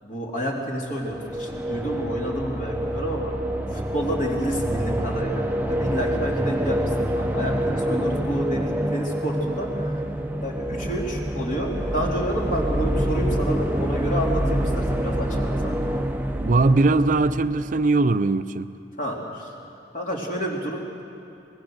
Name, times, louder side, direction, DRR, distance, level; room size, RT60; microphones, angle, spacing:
voice 1, 0.0-3.3 3.7-10.0 10.4-15.8 19.0-19.5 19.9-20.8, right 1 dB, 45° left, 3.6 m, -29 dB
sound 1, 0.9-18.0, right 1 dB, 10° right, 0.7 m, -26 dB
voice 2, 16.4-18.7, right 3 dB, 45° right, 0.5 m, -20 dB
26.0 x 20.5 x 6.5 m
head